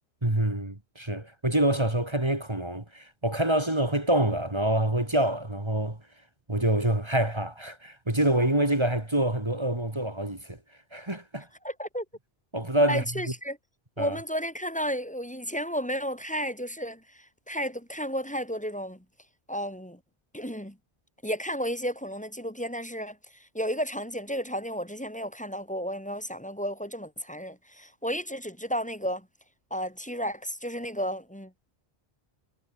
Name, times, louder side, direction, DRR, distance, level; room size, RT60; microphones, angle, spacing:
voice 1, 0.2-6.0 6.5-10.6 10.9-11.5 12.5-13.0 14.0-14.2, right 1 dB, 25° right, 2.5 m, -26 dB
voice 2, 11.6-12.1 12.9-13.6 14.0-19.0 19.5-20.0 20.3-20.8 21.2-29.3 29.7-31.5, equal, 5° left, 2.2 m, -33 dB
omnidirectional pair, 1.1 m